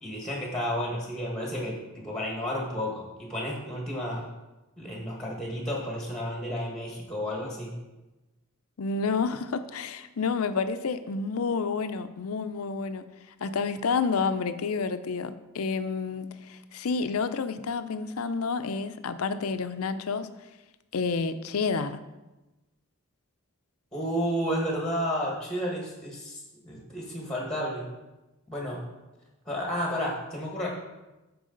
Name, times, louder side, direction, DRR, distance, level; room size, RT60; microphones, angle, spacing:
voice 1, 0.0-4.3 4.8-7.7 23.9-27.9 28.5-28.8 29.4-30.7, equal, 5° left, -2 dB, 1.5 m, -32 dB
voice 2, 8.8-13.1 13.4-20.3 20.9-22.0, left 4 dB, 90° left, 11 dB, 0.6 m, -29 dB
12.5 x 4.7 x 3.9 m, 1.1 s
head